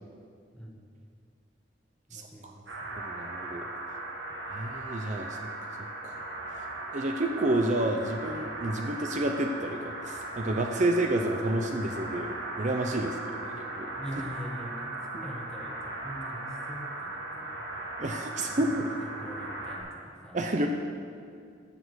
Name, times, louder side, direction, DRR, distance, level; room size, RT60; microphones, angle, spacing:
voice 1, 0.5-0.8 2.1-3.0 13.9-17.6 18.3-20.4, equal, 5° left, 0 dB, 1.4 m, -43 dB
voice 2, 2.1-2.5 3.0-3.7 4.5-6.2 6.5-6.6 6.9-13.9 18.0-18.9 20.3-20.7, right 1 dB, 40° right, 4 dB, 0.6 m, -30 dB
sound 1, 2.7-19.8, right 2 dB, 80° right, 2.2 m, -38 dB
14.0 x 7.3 x 6.4 m, 2.3 s
head